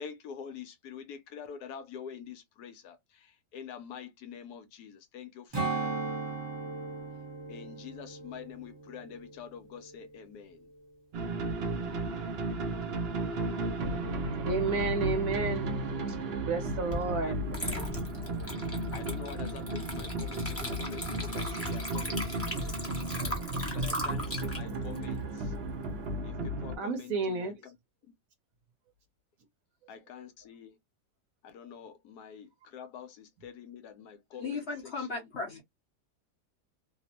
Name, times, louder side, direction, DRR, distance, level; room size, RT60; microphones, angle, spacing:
voice 1, 0.0-5.9 7.5-10.7 17.2-17.9 18.9-22.3 23.2-23.3 23.7-25.5 26.2-27.8 28.1-28.2 29.9-30.8 31.4-35.6, left 7 dB, 75° left, 1.1 m, -46 dB
Strum, 5.5-10.2 10.6-10.8, right 3 dB, 30° right, 0.5 m, -38 dB
sound 1, 11.1-26.8, right 2 dB, 80° right, 0.5 m, -34 dB
voice 2, 14.4-15.7 16.4-17.4 26.8-27.5, right 4 dB, 65° right, 0.9 m, -31 dB
Water / Liquid, 16.9-17.1 17.5-26.0, equal, 10° left, 0.8 m, -38 dB
voice 3, 34.4-35.6, left 4 dB, 55° left, 0.8 m, -36 dB
2.8 x 2.0 x 2.7 m
omnidirectional pair, 1.8 m